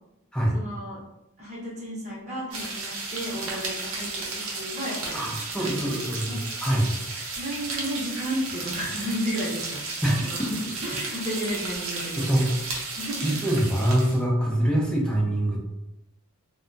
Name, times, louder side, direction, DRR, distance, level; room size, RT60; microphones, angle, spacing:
voice 1, 0.5-1.0 1.4-5.3 5.6-5.7 6.2-6.4 7.3-9.8 10.2-12.3 12.9-13.3, equal, 35° right, -5 dB, 0.8 m, -33 dB
sound 1, 2.5-14.2, right 3 dB, 70° right, 0.7 m, -34 dB
voice 2, 5.1-6.9 10.0-10.5 12.2-12.5 13.2-15.7, right 1 dB, 5° left, -3 dB, 0.5 m, -24 dB
2.7 x 2.2 x 2.5 m, 0.88 s
head